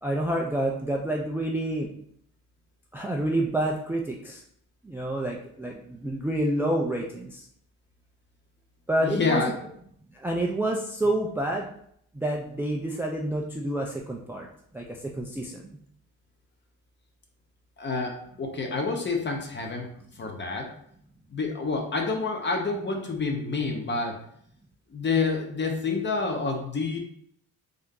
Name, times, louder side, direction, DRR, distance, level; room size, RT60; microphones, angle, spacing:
voice 1, 0.0-1.9 2.9-4.4 4.8-7.4 8.9-9.4 10.1-11.7 12.1-14.5 14.7-15.6, right 1 dB, 5° right, -1 dB, 0.4 m, -28 dB
voice 2, 9.0-9.5 17.8-19.9 20.2-20.7 21.3-24.2 24.9-27.0, left 4 dB, 30° left, 2 dB, 0.9 m, -28 dB
3.5 x 2.7 x 3.7 m, 0.67 s
cardioid pair, 95°, 36 cm